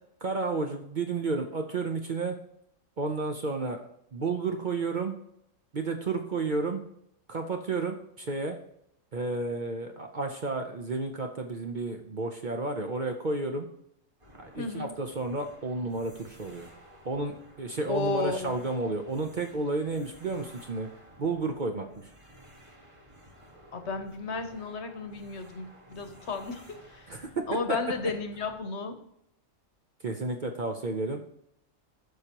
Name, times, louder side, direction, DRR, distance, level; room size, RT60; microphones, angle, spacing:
voice 1, 0.2-2.4 3.0-3.8 4.1-5.2 5.7-6.8 7.3-8.6 9.1-13.7 14.4-16.7 17.0-20.9 21.2-21.9 27.1-27.4 27.7-27.8 30.0-31.2, right 3 dB, 45° right, 4 dB, 0.7 m, -31 dB
sound 1, 14.2-28.6, equal, 25° right, 1.4 m, -54 dB
voice 2, 14.6-14.9 17.9-18.6 23.7-27.1 27.5-29.0, left 4 dB, 60° left, 7 dB, 1.1 m, -33 dB
11.5 x 6.4 x 2.9 m, 0.75 s
omnidirectional pair, 1.4 m